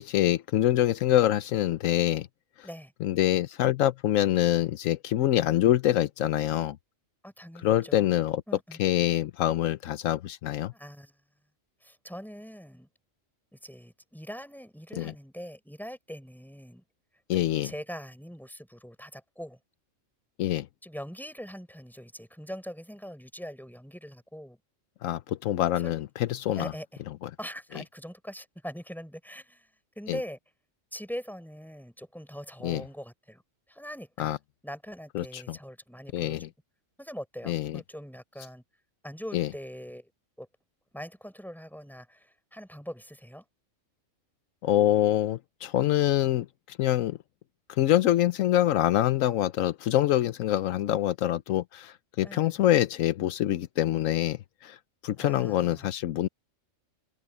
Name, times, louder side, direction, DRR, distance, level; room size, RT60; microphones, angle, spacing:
voice 1, 0.0-2.3 2.6-2.7 3.0-6.8 7.6-8.4 8.8-10.7 15.0-15.1 17.3-17.7 20.4-20.7 25.0-26.7 27.2-27.3 30.1-30.2 32.6-32.8 34.2-34.4 35.1-35.6 36.1-36.5 37.5-37.8 39.3-39.5 44.6-47.2 47.7-54.8 55.0-56.3, left 13 dB, 80° left, 1.0 m, -25 dB
voice 2, 7.2-8.2 8.5-8.8 10.7-11.2 11.8-12.9 13.5-16.8 17.3-19.6 20.8-24.6 25.8-25.9 26.6-27.0 27.4-29.7 30.0-30.4 30.9-33.4 33.7-34.4 34.6-36.4 37.0-38.6 39.0-40.1 40.4-40.5 40.9-43.4 52.2-52.6 55.2-55.9, equal, ahead, 5.2 m, -42 dB
omnidirectional pair, 1.3 m